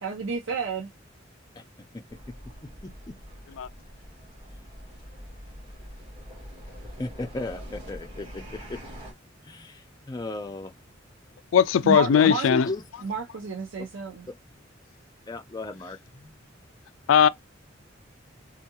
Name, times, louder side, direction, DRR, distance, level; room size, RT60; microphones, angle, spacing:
voice 1, 0.0-0.9 11.8-12.5 13.0-14.3, right 4 dB, 90° right, 0.6 m, -30 dB
voice 2, 1.9-2.3 3.1-3.2 7.0-8.8 9.4-10.7 12.1-12.8 13.8-13.9 14.3-14.4 15.3-16.7, left 2 dB, 20° left, 0.5 m, -36 dB
sound 1, 2.1-9.1, equal, 30° right, 2.4 m, -44 dB
voice 3, 11.5-12.7 17.1-17.3, left 8 dB, 90° left, 0.3 m, -19 dB
4.5 x 2.4 x 2.8 m
head